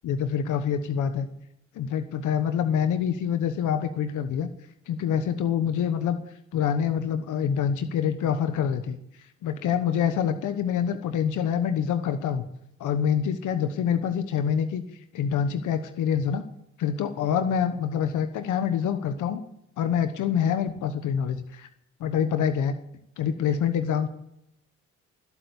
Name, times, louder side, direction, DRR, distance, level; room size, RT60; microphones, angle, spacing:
voice 1, 0.0-1.3 1.8-4.5 4.9-6.2 6.5-12.4 12.8-14.8 15.1-16.4 16.8-19.4 19.8-21.7 22.0-22.7 23.2-24.1, left 8 dB, 80° left, 9 dB, 1.2 m, -26 dB
19.0 x 8.3 x 8.2 m, 0.78 s
cardioid pair, 90°, 30 cm